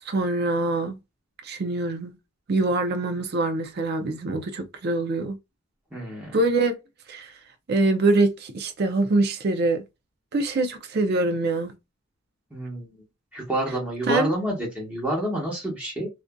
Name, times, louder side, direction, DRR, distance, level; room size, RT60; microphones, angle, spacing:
voice 1, 0.1-1.0 1.4-2.1 2.5-5.4 6.3-6.7 7.1-7.3 7.7-9.8 10.3-11.7 14.1-14.3, right 2 dB, 45° right, 0.4 m, -24 dB
voice 2, 5.9-6.4 12.5-13.0 13.3-16.1, right 1 dB, 5° right, 1.0 m, -28 dB
2.5 x 2.4 x 2.2 m
head